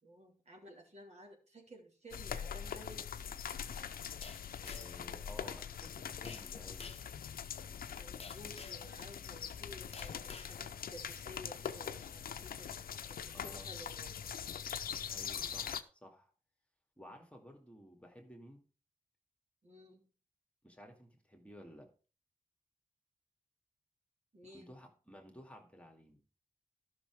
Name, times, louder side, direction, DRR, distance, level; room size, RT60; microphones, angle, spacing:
voice 1, 0.0-3.2 8.0-12.7 13.2-14.3 19.6-20.1 24.3-24.7, equal, 50° right, 0 dB, 3.1 m, -54 dB
sound 1, 2.1-15.8, left 8 dB, 90° left, 0.6 m, -43 dB
sound 2, 4.2-5.0 6.2-6.5 6.8-7.1 8.2-8.9 9.9-10.5, left 4 dB, 45° left, 0.8 m, -50 dB
voice 2, 4.6-7.0 13.3-13.7 15.1-16.3 17.0-18.6 20.6-21.9 24.5-26.2, equal, 10° left, 3 dB, 2.4 m, -55 dB
12.0 x 6.2 x 4.7 m, 0.36 s
cardioid pair, 55°, 15 cm